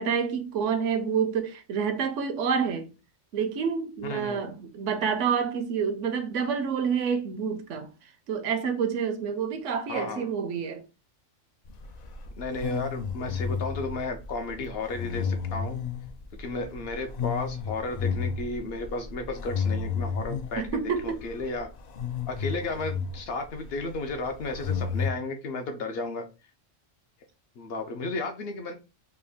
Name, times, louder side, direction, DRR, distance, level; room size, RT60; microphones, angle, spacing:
voice 1, 0.0-2.9 3.3-7.9 8.3-10.8 20.6-21.2, right 6 dB, 75° right, 0.9 m, -28 dB
voice 2, 4.1-4.4 9.9-10.3 12.4-15.8 16.4-21.7 22.3-26.2 27.6-28.7, left 3 dB, 60° left, 0.7 m, -33 dB
sound 1, 11.6-25.1, left 6 dB, 80° left, 0.3 m, -33 dB
3.3 x 2.3 x 3.4 m
omnidirectional pair, 1.3 m